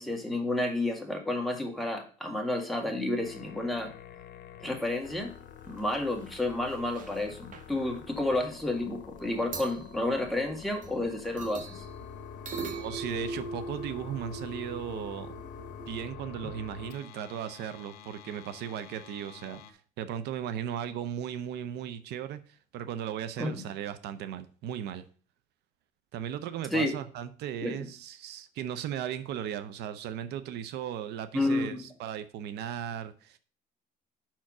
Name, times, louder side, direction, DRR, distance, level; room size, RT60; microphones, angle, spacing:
voice 1, 0.0-3.9 4.6-5.3 5.7-11.8 23.4-23.6 26.7-26.9 27.6-27.7 31.3-31.8, left 2 dB, ahead, 1.8 m, -30 dB
sound 1, 3.2-19.7, left 7 dB, 70° left, 0.9 m, -47 dB
sound 2, 5.6-5.8 6.1-6.4 6.6-7.2 7.5-7.7 9.2-9.3 9.5-11.0 11.4-16.1, right 3 dB, 50° right, 1.2 m, -42 dB
voice 2, 12.6-15.3 15.9-25.0 26.1-33.4, right 9 dB, 80° right, 0.6 m, -37 dB
5.8 x 4.5 x 6.0 m
cardioid pair, 110°, 17 cm